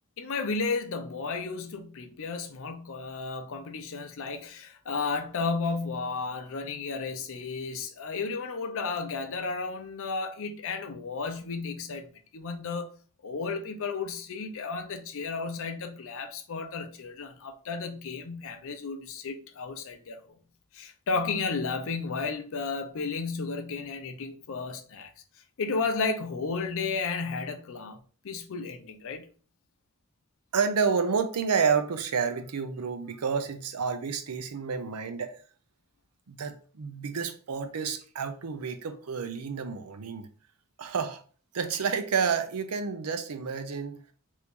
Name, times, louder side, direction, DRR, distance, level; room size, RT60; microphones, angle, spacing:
voice 1, 0.2-12.9 13.2-20.4 20.7-25.1 25.6-29.3, left 4 dB, 65° left, 0.5 m, -33 dB
voice 2, 30.5-35.3 36.3-40.3 40.8-41.2 41.5-44.0, right 6 dB, 90° right, 0.5 m, -29 dB
2.9 x 2.6 x 3.5 m
head